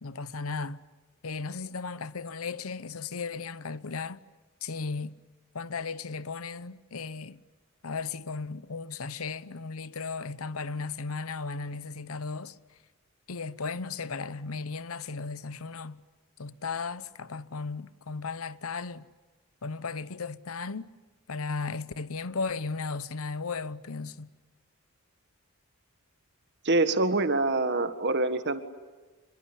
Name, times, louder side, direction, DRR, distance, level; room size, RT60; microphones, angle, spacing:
voice 1, 0.0-0.8 1.2-4.2 4.6-5.1 5.5-7.4 7.8-12.6 13.3-16.0 16.4-19.1 19.6-20.9 21.3-24.3, left 4 dB, 70° left, 0.9 m, -35 dB
voice 2, 26.6-28.6, right 2 dB, 50° right, 1.7 m, -25 dB
26.5 x 23.0 x 9.9 m
head